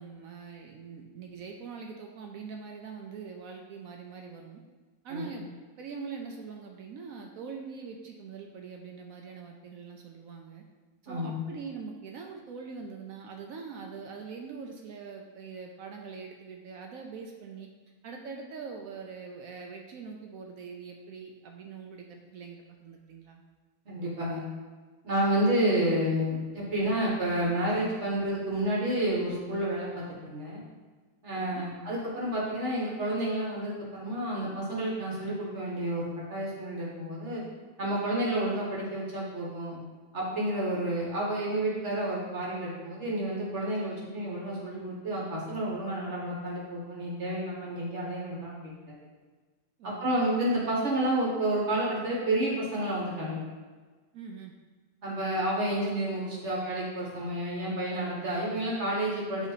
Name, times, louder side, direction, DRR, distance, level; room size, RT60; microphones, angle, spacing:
voice 1, 0.0-4.6 5.0-5.5 5.8-10.6 11.0-17.7 18.0-23.4 31.3-31.7 49.8-50.3 54.1-54.5, right 5 dB, 70° right, 2 dB, 1.0 m, -43 dB
voice 2, 23.9-24.4 25.0-30.6 31.2-37.4 37.8-39.8 40.1-49.0 49.8-53.5 55.0-59.5, right 1 dB, 50° right, -5 dB, 1.4 m, -30 dB
8.0 x 3.2 x 4.0 m, 1.4 s
omnidirectional pair, 1.6 m